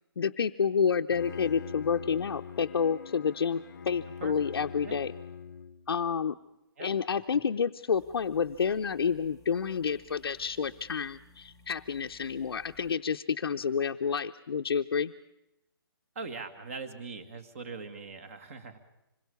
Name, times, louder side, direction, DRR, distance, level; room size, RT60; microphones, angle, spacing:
voice 1, 0.2-5.1 5.9-6.4 6.8-15.1, left 6 dB, 80° left, 3 dB, 0.8 m, -29 dB
Bowed string instrument, 0.9-6.0, left 6 dB, 45° left, 0.8 m, -43 dB
sound 1, 7.9-12.9, left 3 dB, ahead, 0.8 m, -59 dB
voice 2, 16.2-18.8, right 4 dB, 35° right, 9 dB, 2.0 m, -41 dB
26.0 x 21.5 x 7.0 m, 0.90 s
hypercardioid pair, 175°, 13 cm